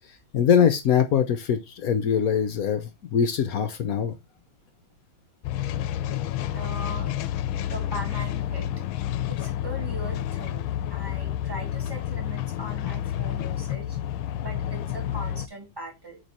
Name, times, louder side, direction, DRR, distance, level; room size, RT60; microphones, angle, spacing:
voice 1, 0.3-4.1, left 8 dB, 65° left, 0.9 m, -22 dB
sound 1, 5.4-15.5, left 11 dB, 85° left, 1.4 m, -30 dB
voice 2, 6.1-7.1 7.6-8.7 9.3-14.0 14.4-16.2, equal, 10° right, 2.2 m, -39 dB
8.4 x 3.6 x 4.2 m
omnidirectional pair, 2.2 m